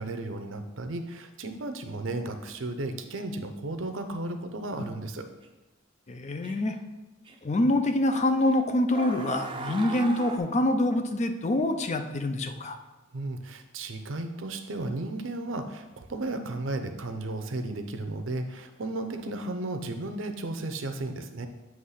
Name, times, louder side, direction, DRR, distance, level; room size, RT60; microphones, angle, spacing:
voice 1, 0.0-5.3 13.1-21.5, right 2 dB, 65° right, 7 dB, 0.6 m, -34 dB
sound 1, 5.4-5.5 6.4-6.7 7.3-7.4 8.4-8.5 8.9-10.4, right 3 dB, 25° right, 0.5 m, -37 dB
voice 2, 6.1-6.8 7.4-12.8, left 1 dB, 35° left, 7 dB, 0.5 m, -25 dB
7.9 x 3.1 x 5.6 m, 1.1 s
head